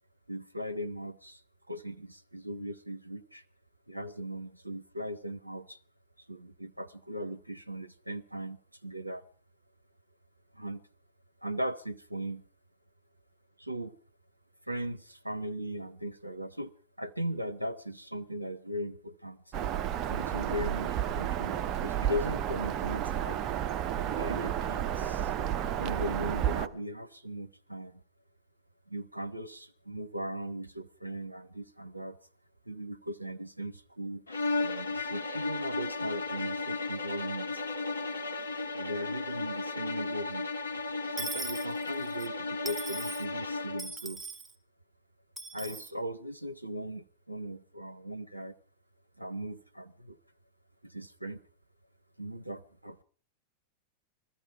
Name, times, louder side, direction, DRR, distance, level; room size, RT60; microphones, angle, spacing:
voice 1, 0.3-1.4 1.7-3.4 3.9-5.8 6.3-9.2 10.5-10.8 11.4-12.4 13.6-14.0 14.7-16.7 17.0-19.4 20.1-23.5 24.2-25.3 25.8-28.0 28.9-32.2 32.7-34.2 34.6-37.6 38.7-40.9 41.1-44.2 45.5-48.5 49.2-50.2 50.8-51.4 52.2-53.0, equal, 85° right, 0.7 m, -38 dB
Bird vocalization bird call bird song, 19.5-26.7, right 10 dB, 35° right, 0.9 m, -31 dB
sound 1, 34.3-44.0, left 3 dB, 75° left, 1.5 m, -34 dB
Dishes pots and pans / Coin (dropping), 41.2-42.3 42.7-43.2 43.8-44.5 45.4-45.9, right 3 dB, 10° right, 1.8 m, -40 dB
21.0 x 14.5 x 4.7 m
figure-of-eight pair, 90°, 0 cm